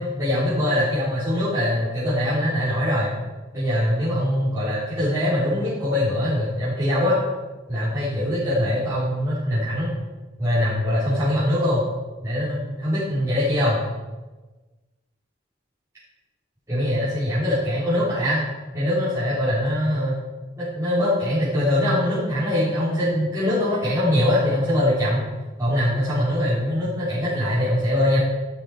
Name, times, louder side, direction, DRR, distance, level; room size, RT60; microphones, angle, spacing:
voice 1, 0.0-3.1 3.5-7.2 7.7-9.9 10.4-11.8 12.2-13.8 16.7-18.4 18.7-20.1 20.6-25.2 25.6-28.2, left 1 dB, 15° right, -14 dB, 4.0 m, -22 dB
12.5 x 8.6 x 5.0 m, 1.2 s
head